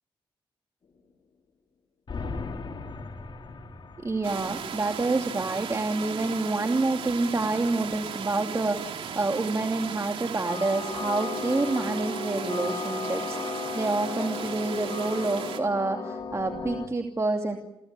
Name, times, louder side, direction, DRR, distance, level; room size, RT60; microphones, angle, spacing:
sound 1, 2.1-5.0 10.5-16.9, left 3 dB, 60° left, 3.7 m, -35 dB
voice 1, 4.0-17.6, right 3 dB, 35° right, 3 dB, 2.7 m, -28 dB
sound 2, 4.2-15.6, right 7 dB, 85° right, 3.0 m, -37 dB
29.5 x 17.0 x 9.8 m, 0.92 s
cardioid pair, 65°, 9 cm